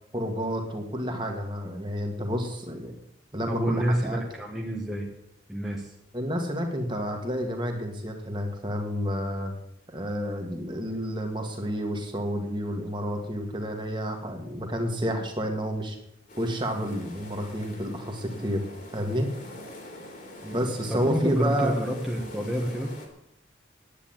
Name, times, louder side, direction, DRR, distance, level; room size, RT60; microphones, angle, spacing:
voice 1, 0.1-2.9 3.3-4.2 6.1-9.5 9.9-16.0 16.4-18.6 18.9-19.3 20.5-21.8, equal, 25° right, 4 dB, 1.9 m, -30 dB
voice 2, 3.4-5.1 5.5-5.9 20.4-20.6 20.9-22.9, equal, ahead, -2 dB, 1.4 m, -28 dB
sound 1, 16.3-23.1, left 1 dB, 45° left, 2.8 m, -44 dB
10.0 x 9.8 x 8.9 m, 0.78 s
head